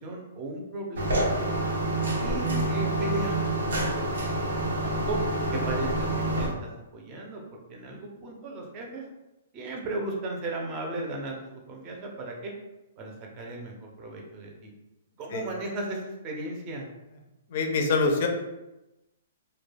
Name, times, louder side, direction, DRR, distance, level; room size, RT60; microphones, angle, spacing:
voice 1, 0.0-1.6 2.2-5.2 5.5-6.5 6.9-7.4 7.7-9.0 9.5-11.4 11.7-12.5 13.0-14.7 15.2-16.9, right 2 dB, 25° right, 0 dB, 0.5 m, -36 dB
sound 1, 1.0-6.5, right 1 dB, 85° right, 0.7 m, -27 dB
voice 2, 17.5-18.3, left 4 dB, 45° left, 3 dB, 0.4 m, -24 dB
2.3 x 2.2 x 3.2 m, 0.99 s
hypercardioid pair, 160°, 0 cm